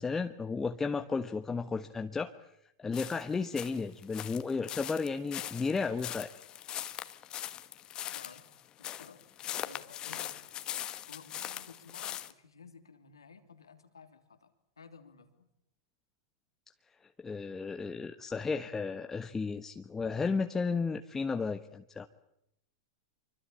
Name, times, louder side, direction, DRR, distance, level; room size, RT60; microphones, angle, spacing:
voice 1, 0.0-2.5 2.8-6.3 17.2-22.1, left 4 dB, 15° left, 6 dB, 1.2 m, -33 dB
sound 1, 2.9-12.3, left 11 dB, 35° left, 1.6 m, -41 dB
voice 2, 8.1-8.4 8.8-9.2 9.6-10.5 11.1-15.5, left 5 dB, 90° left, 8 dB, 3.1 m, -54 dB
25.5 x 24.0 x 8.7 m, 0.79 s
hypercardioid pair, 100°, 2 cm